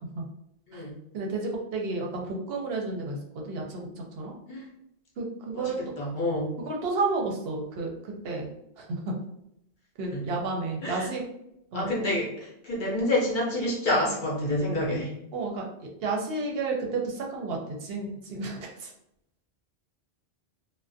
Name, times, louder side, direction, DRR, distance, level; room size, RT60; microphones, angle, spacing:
voice 1, 1.1-4.3 5.2-5.8 6.6-8.5 8.8-9.1 10.0-11.2 11.7-11.9 15.3-18.9, right 3 dB, 70° right, 0 dB, 0.8 m, -32 dB
voice 2, 5.5-6.5 10.1-10.3 10.8-11.1 11.7-15.1, left 1 dB, 55° left, -4 dB, 0.8 m, -28 dB
2.4 x 2.1 x 2.5 m, 0.77 s
omnidirectional pair, 1.1 m